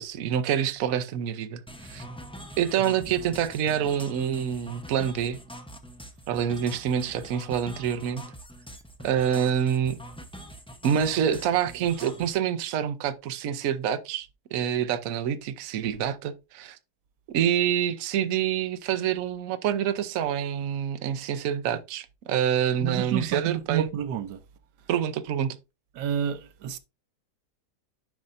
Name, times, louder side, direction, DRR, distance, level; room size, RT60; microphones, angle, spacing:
voice 1, 0.0-2.0 2.6-5.4 6.3-8.2 9.0-10.0 10.8-16.8 17.3-23.9 24.9-25.6, right 9 dB, 65° right, 1.1 m, -27 dB
sound 1, 1.7-12.3, equal, 5° left, 0.4 m, -44 dB
voice 2, 22.8-24.4 25.9-26.8, right 9 dB, 85° right, 1.3 m, -29 dB
10.5 x 5.5 x 2.6 m
omnidirectional pair, 1.7 m